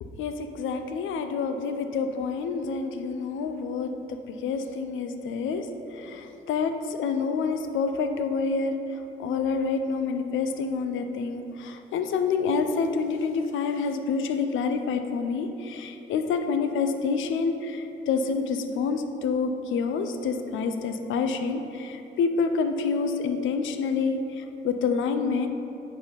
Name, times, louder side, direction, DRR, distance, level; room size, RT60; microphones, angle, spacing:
voice 1, 0.0-5.7 5.9-8.7 9.2-25.5, left 5 dB, 80° left, 7 dB, 0.6 m, -28 dB
5.8 x 4.9 x 5.1 m, 2.9 s
cardioid pair, 90°, 20 cm